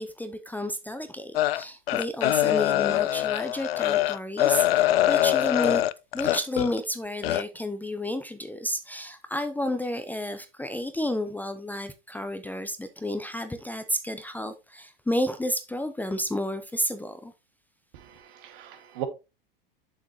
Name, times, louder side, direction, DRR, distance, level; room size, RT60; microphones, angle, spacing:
voice 1, 0.0-5.8 6.1-17.3, left 1 dB, 5° left, 0.7 m, -31 dB
sound 1, 1.3-6.8 7.2-7.4, left 14 dB, 80° left, 0.5 m, -23 dB
voice 2, 17.9-19.0, right 12 dB, 60° right, 2.0 m, -38 dB
7.4 x 7.2 x 3.0 m
hypercardioid pair, 100°, 29 cm